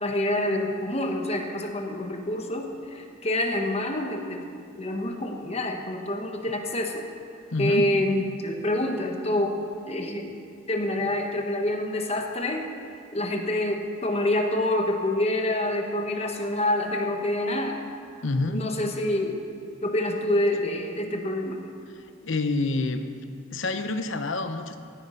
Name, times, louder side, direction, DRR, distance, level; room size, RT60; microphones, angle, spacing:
voice 1, 0.0-4.5 4.8-7.1 7.6-10.3 10.7-12.7 13.1-17.8 18.5-19.4 19.8-21.7, left 1 dB, 30° left, 3 dB, 1.1 m, -27 dB
voice 2, 7.5-7.9 18.2-18.6 22.0-23.1 23.5-24.8, left 2 dB, 65° left, 9 dB, 0.8 m, -27 dB
16.0 x 9.2 x 5.7 m, 2.4 s
head